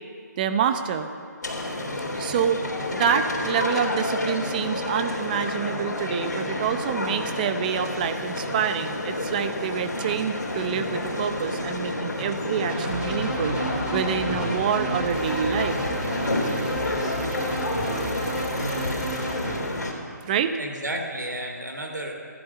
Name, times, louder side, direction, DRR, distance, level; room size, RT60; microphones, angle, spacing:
voice 1, 0.4-1.1 2.1-2.6 2.9-13.6 13.9-15.8 20.2-20.6, right 7 dB, 25° right, 8 dB, 0.8 m, -27 dB
sound 1, 1.4-19.9, left 1 dB, 70° left, 3.6 m, -29 dB
sound 2, 12.7-19.6, right 1 dB, 10° right, 2.7 m, -31 dB
voice 2, 20.2-22.1, right 1 dB, 80° right, 3 dB, 3.0 m, -33 dB
15.5 x 11.5 x 6.9 m, 2.4 s
figure-of-eight pair, 150°, 10 cm